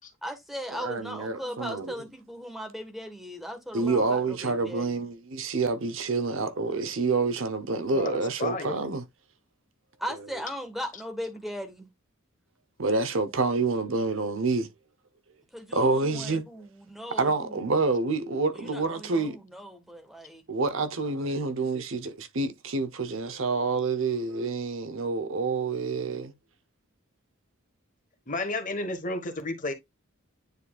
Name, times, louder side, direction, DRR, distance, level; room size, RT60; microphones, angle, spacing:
voice 1, 0.2-5.0 10.0-11.9 15.5-17.6 18.5-20.4, equal, ahead, 1.4 m, -38 dB
voice 2, 0.7-1.9 3.7-9.0 12.8-14.7 15.7-16.4 17.2-19.4 20.5-26.3, right 3 dB, 70° right, 0.8 m, -28 dB
voice 3, 7.7-8.8 28.3-29.7, left 2 dB, 40° left, 1.4 m, -32 dB
9.5 x 4.3 x 2.4 m
head